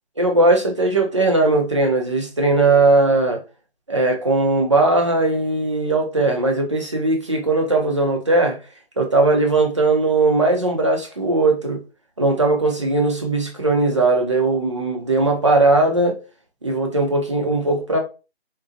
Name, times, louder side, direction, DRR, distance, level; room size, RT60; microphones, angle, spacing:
voice 1, 0.2-3.4 3.9-8.6 9.0-11.8 12.2-16.2 16.6-18.0, right 2 dB, 30° right, 0.5 m, -18 dB
3.7 x 2.0 x 2.6 m
figure-of-eight pair, 165°, 32 cm